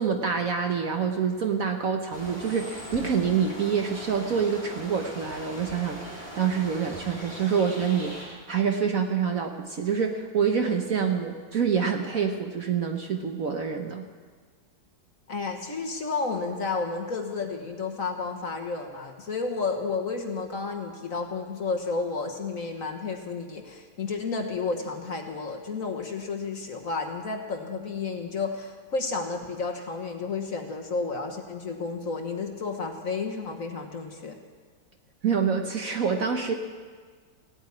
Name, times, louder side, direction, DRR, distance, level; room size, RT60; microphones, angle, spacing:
voice 1, 0.0-14.1 35.2-36.5, right 6 dB, 55° right, 4 dB, 1.2 m, -26 dB
sound 1, 2.1-8.2, equal, 5° right, 3.8 m, -40 dB
voice 2, 15.3-34.4, left 4 dB, 45° left, 4 dB, 1.4 m, -31 dB
16.5 x 8.9 x 9.7 m, 1.6 s
omnidirectional pair, 2.2 m